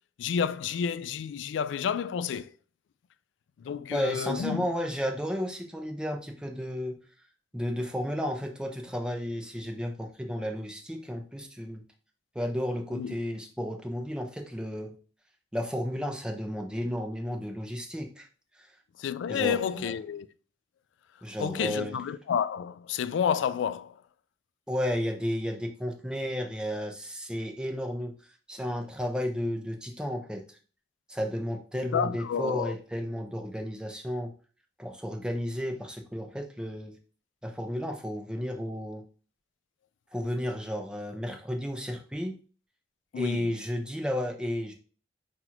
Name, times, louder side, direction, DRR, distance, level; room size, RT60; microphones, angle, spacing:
voice 1, 0.2-2.5 3.6-4.7 12.9-13.1 19.0-20.3 21.4-24.0 31.7-32.8 43.1-43.5, left 7 dB, 90° left, 0.3 m, -30 dB
voice 2, 3.9-7.0 7.5-11.8 12.3-14.9 15.5-18.3 18.6-18.7 19.3-19.9 21.2-22.0 24.7-28.1 28.5-30.4 31.1-34.3 34.8-37.0 37.4-39.0 40.1-42.4 43.2-44.7, equal, 5° right, 0.6 m, -33 dB
5.7 x 2.5 x 2.9 m
head